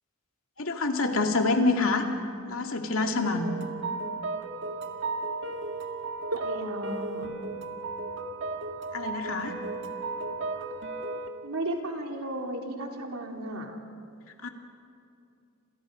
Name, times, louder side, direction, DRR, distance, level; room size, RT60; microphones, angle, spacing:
voice 1, 0.6-2.1 2.4-3.5 8.9-9.6 14.4-14.5, left 3 dB, 70° left, 3 dB, 2.5 m, -26 dB
sound 1, 3.2-11.3, right 3 dB, 55° right, 1.7 m, -35 dB
voice 2, 6.3-7.3 11.4-13.8, right 1 dB, 80° right, 1 dB, 3.3 m, -34 dB
30.0 x 27.0 x 5.3 m, 2.6 s
head